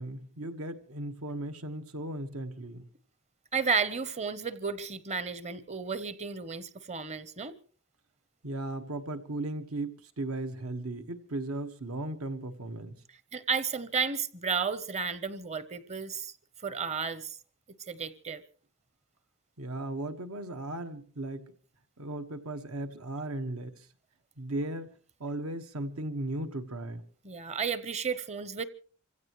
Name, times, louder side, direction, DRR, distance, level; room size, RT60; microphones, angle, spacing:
voice 1, 0.0-2.9 8.4-13.0 19.6-21.5 22.0-23.9 24.4-27.0, right 2 dB, 80° right, 1.5 m, -36 dB
voice 2, 3.5-7.5 13.3-16.3 16.6-17.4 17.9-18.4 27.2-28.6, right 5 dB, 30° right, 0.9 m, -32 dB
27.5 x 16.0 x 3.1 m
head